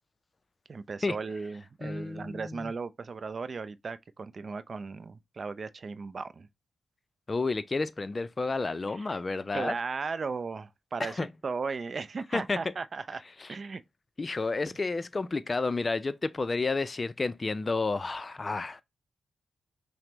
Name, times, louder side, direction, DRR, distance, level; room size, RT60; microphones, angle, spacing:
voice 1, 0.7-6.5 8.9-9.2 9.5-13.2 13.5-13.8, right 4 dB, 55° right, 0.3 m, -36 dB
voice 2, 1.8-2.7 7.3-9.8 11.0-11.3 12.3-12.7 13.4-13.5 14.2-18.8, left 3 dB, 40° left, 0.4 m, -31 dB
5.7 x 2.0 x 2.9 m
supercardioid pair, 45°, 0 cm